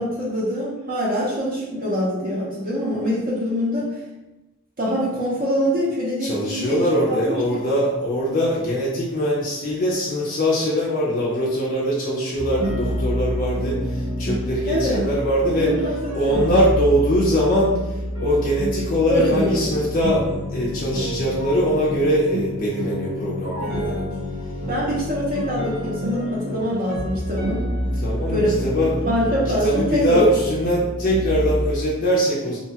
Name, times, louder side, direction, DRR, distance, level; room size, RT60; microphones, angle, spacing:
voice 1, 0.0-3.9 4.8-7.6 14.7-15.0 15.5-16.5 19.1-19.7 23.6-24.0 24.7-27.6 28.3-28.6 29.1-30.3, equal, 40° right, -6 dB, 0.5 m, -24 dB
voice 2, 6.2-15.8 16.1-23.9 28.0-28.9 29.6-32.6, equal, 35° left, -6 dB, 0.4 m, -22 dB
sound 1, 12.3-31.7, equal, 75° right, 0.9 m, -28 dB
2.8 x 2.2 x 2.7 m, 1.0 s
head